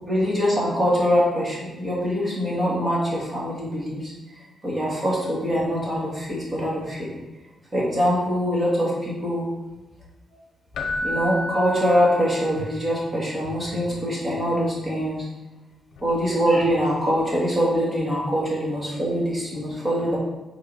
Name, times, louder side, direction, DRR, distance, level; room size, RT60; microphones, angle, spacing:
voice 1, 0.0-4.1 4.6-7.1 7.7-9.5 11.0-15.2 16.0-20.2, equal, 20° right, -6 dB, 2.5 m, -23 dB
Keyboard (musical), 10.7-12.7 16.0-16.1, left 1 dB, 70° left, 0.8 m, -31 dB
6.3 x 4.1 x 5.6 m, 1.1 s
wide cardioid pair, 150°, 0 cm